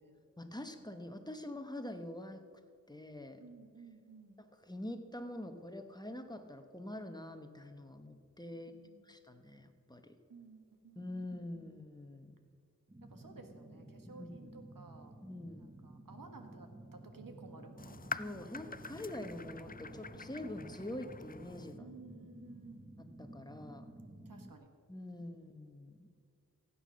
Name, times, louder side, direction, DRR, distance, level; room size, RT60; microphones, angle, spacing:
voice 1, 0.4-2.4 2.9-3.4 4.4-8.7 9.0-10.0 11.0-12.3 14.0-14.3 15.2-15.6 18.1-21.9 23.0-23.9 24.9-26.1, left 1 dB, 10° left, 6 dB, 1.2 m, -45 dB
voice 2, 3.4-4.4 8.5-9.0 10.3-11.7 13.1-15.1 15.6-18.0 21.8-22.9 24.3-24.7 25.1-25.5, right 3 dB, 85° right, 5 dB, 1.6 m, -55 dB
sound 1, 12.9-24.5, right 1 dB, 15° right, 0.9 m, -53 dB
sound 2, 17.8-21.8, left 4 dB, 30° left, 0.4 m, -46 dB
16.0 x 8.7 x 6.4 m, 2.1 s
wide cardioid pair, 60°, 33 cm